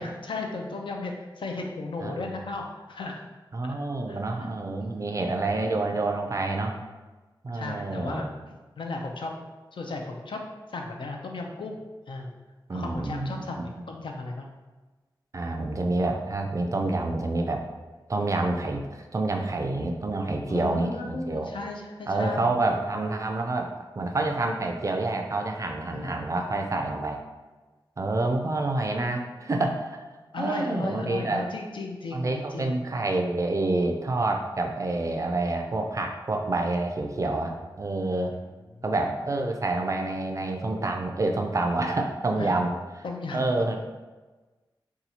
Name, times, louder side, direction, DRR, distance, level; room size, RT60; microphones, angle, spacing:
voice 1, 0.0-3.3 3.6-3.7 4.1-4.2 4.8-5.1 7.5-8.3 8.8-9.3 9.7-10.4 10.7-11.8 12.1-12.4 12.7-14.5 20.5-22.5 25.9-26.3 30.3-32.7 38.3-38.4 38.7-39.1 42.3-42.5 43.0-43.8, left 3 dB, 75° left, 2 dB, 0.5 m, -35 dB
voice 2, 3.5-6.8 7.4-8.3 12.7-13.7 15.3-17.6 18.1-21.5 22.1-27.2 28.0-30.0 30.4-31.5 32.1-38.3 38.8-42.7 43.0-43.1 43.3-43.8, right 2 dB, 40° right, 3 dB, 0.4 m, -28 dB
2.8 x 2.3 x 4.1 m, 1.3 s
wide cardioid pair, 105°, 8 cm